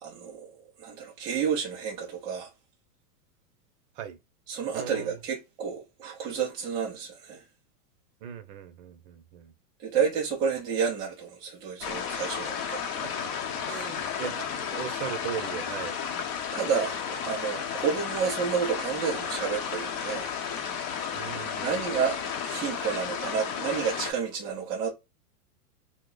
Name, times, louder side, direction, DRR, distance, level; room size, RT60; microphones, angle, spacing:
voice 1, 0.0-2.5 4.5-7.4 9.8-12.8 13.7-14.0 16.5-20.3 21.6-24.9, right 6 dB, 10° right, 0.3 m, -30 dB
voice 2, 4.7-5.2 8.2-9.5 13.0-13.3 13.6-16.0 21.1-21.8, right 9 dB, 45° right, 0.7 m, -38 dB
sound 1, 11.8-24.1, left 7 dB, 35° left, 0.7 m, -33 dB
2.8 x 2.1 x 3.8 m
hypercardioid pair, 130°, 48 cm